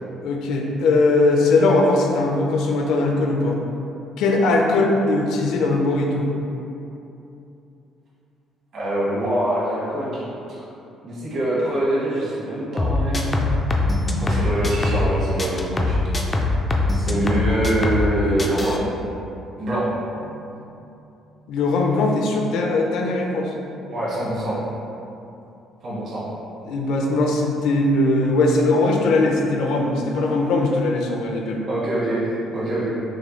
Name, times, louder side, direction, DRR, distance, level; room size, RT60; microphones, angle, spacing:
voice 1, 0.2-3.6 4.2-6.3 20.3-20.5 21.5-23.5 26.6-31.6, left 2 dB, 75° left, 1 dB, 0.5 m, -20 dB
voice 2, 8.7-10.2 10.5-10.6 11.0-13.5 13.9-16.0 16.9-19.0 19.6-19.9 23.9-24.6 25.8-26.3 31.7-32.9, right 1 dB, 45° right, -8 dB, 1.2 m, -24 dB
sound 1, 12.8-15.1 15.4-18.1 18.4-18.8, left 2 dB, 15° left, 0.3 m, -22 dB
6.3 x 2.3 x 3.1 m, 2.8 s
cardioid pair, 165°, 0 cm